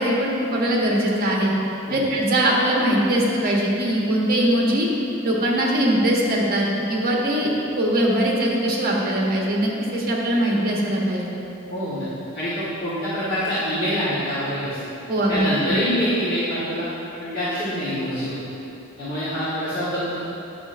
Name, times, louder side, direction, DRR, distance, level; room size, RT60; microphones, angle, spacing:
voice 1, 0.0-1.5 1.9-4.9 5.2-11.2 15.1-15.8, right 1 dB, 40° right, -3 dB, 1.1 m, -21 dB
voice 2, 11.7-12.1 12.3-14.8 15.3-16.9 17.2-18.4 19.0-20.2, equal, 40° left, -13 dB, 1.3 m, -25 dB
9.0 x 5.9 x 2.6 m, 2.9 s
head